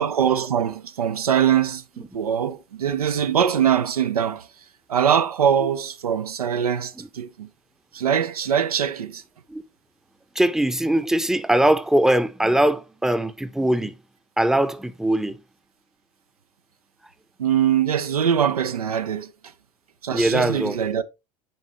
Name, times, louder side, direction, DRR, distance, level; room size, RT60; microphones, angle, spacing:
voice 1, 0.0-4.5 4.9-7.5 7.9-9.2 17.4-19.3 20.0-21.0, right 8 dB, 80° right, 0.5 m, -22 dB
voice 2, 10.4-14.0 14.4-15.4 20.1-20.8, right 1 dB, ahead, 0.7 m, -21 dB
9.4 x 4.2 x 3.0 m
figure-of-eight pair, 75°, 19 cm